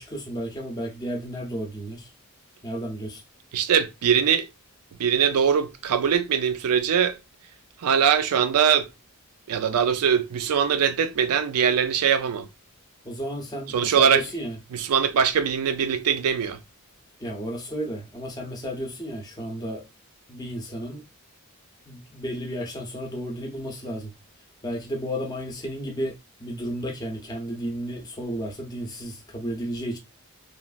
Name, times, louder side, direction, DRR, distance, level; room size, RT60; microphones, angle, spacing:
voice 1, 0.0-2.1 2.6-3.2 13.0-14.6 17.2-19.8 20.3-21.0 21.9-24.1 24.6-30.0, equal, 15° left, 0.5 m, -33 dB
voice 2, 3.5-4.5 5.0-7.2 7.8-8.9 9.5-12.5 13.7-14.2 14.7-16.6, right 7 dB, 80° right, 0.4 m, -22 dB
3.0 x 2.3 x 2.3 m
head